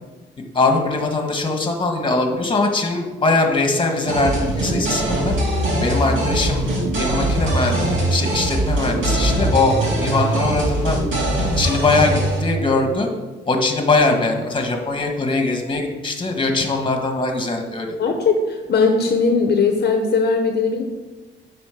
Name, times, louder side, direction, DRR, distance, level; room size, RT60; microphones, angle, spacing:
voice 1, 0.5-5.3 5.8-7.8 8.1-11.0 11.6-13.1 13.5-17.9, left 3 dB, 25° left, 3 dB, 1.6 m, -21 dB
sound 1, 4.1-12.4, right 1 dB, 70° right, 2.8 m, -21 dB
voice 2, 18.0-20.8, left 4 dB, 55° left, 4 dB, 1.0 m, -19 dB
9.0 x 4.3 x 5.9 m, 1.2 s
cardioid pair, 90°, 20 cm